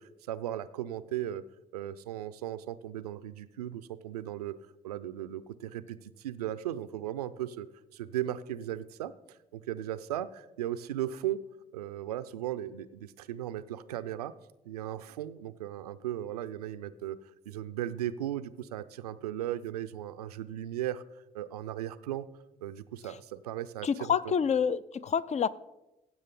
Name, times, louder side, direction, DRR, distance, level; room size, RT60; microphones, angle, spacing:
voice 1, 0.0-1.4 1.7-4.6 4.8-11.4 11.7-14.3 14.7-17.2 17.5-21.0 21.3-22.3 22.6-24.2, right 12 dB, 85° right, 14 dB, 0.4 m, -37 dB
voice 2, 23.8-25.5, left 7 dB, 35° left, 18 dB, 0.5 m, -28 dB
15.5 x 7.7 x 3.8 m, 0.98 s
figure-of-eight pair, 45°, 19 cm